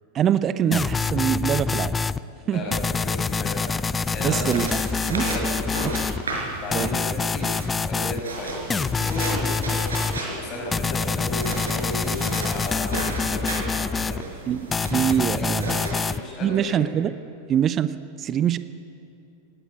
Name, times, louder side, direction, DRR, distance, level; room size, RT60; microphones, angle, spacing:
voice 1, 0.1-2.0 2.5-2.6 4.2-4.7 5.1-5.2 6.7-6.9 14.5-15.8 16.4-17.1 17.5-18.6, right 9 dB, 30° right, 14 dB, 0.7 m, -24 dB
sound 1, 0.7-2.2 2.7-6.2 6.7-8.2 8.7-10.2 10.7-14.2 14.7-16.2, left 4 dB, 15° left, 0.5 m, -26 dB
voice 2, 2.4-2.8 3.0-3.7 4.1-4.6 5.1-5.9 6.6-7.5 7.8-14.3 15.3-16.8, left 1 dB, 35° left, 0 dB, 6.3 m, -34 dB
sound 2, 4.0-16.0, right 3 dB, 70° right, 5.5 m, -35 dB
18.0 x 17.5 x 9.1 m, 2.7 s
figure-of-eight pair, 90°, 0 cm